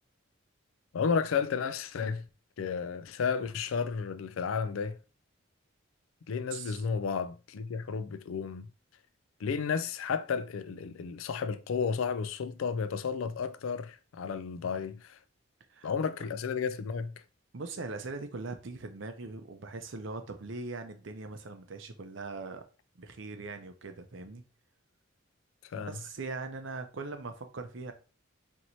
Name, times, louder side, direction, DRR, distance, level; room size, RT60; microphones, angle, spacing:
voice 1, 0.9-2.3 2.6-5.0 6.3-8.7 9.4-15.2 15.8-17.2 25.6-25.9, left 6 dB, 80° left, 0.4 m, -32 dB
voice 2, 17.5-22.6 23.0-24.4 25.9-27.9, right 3 dB, 65° right, 0.6 m, -40 dB
4.4 x 3.0 x 2.7 m
head